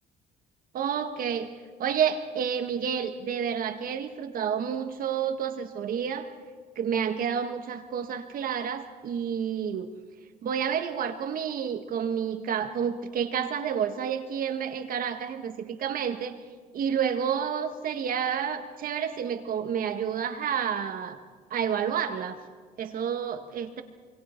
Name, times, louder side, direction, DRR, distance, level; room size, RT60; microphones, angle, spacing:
voice 1, 0.7-1.5 1.8-6.3 6.8-9.9 10.4-16.4 16.7-21.2 21.5-22.4 22.8-23.8, right 8 dB, 55° right, 7 dB, 1.7 m, -29 dB
27.5 x 23.5 x 4.6 m, 1.5 s
cardioid pair, 110°, 17 cm